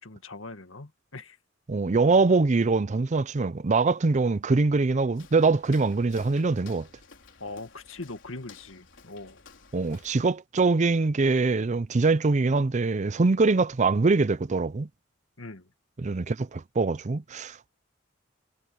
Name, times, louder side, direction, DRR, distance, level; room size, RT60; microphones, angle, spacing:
voice 1, 0.0-1.4 7.4-9.4 15.4-15.7, left 2 dB, 90° left, 2.1 m, -41 dB
voice 2, 1.7-6.9 9.7-14.9 16.0-17.7, right 3 dB, 35° right, 0.5 m, -23 dB
Walk footsteps, 5.1-10.4, left 5 dB, 65° left, 4.6 m, -53 dB
head